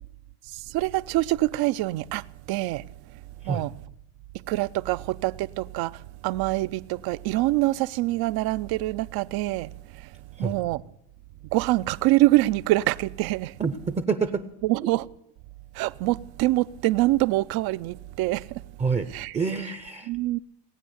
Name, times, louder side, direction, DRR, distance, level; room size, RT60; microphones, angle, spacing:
voice 1, 0.5-2.9 3.4-3.7 4.5-10.8 11.5-13.6 14.6-15.1 15.7-18.6 19.1-19.4 20.1-20.4, right 18 dB, 55° right, 0.6 m, -25 dB
voice 2, 13.6-14.5 18.8-19.1 19.3-20.1, right 5 dB, 15° right, 0.6 m, -27 dB
18.5 x 9.2 x 8.0 m
cardioid pair, 150°, 45 cm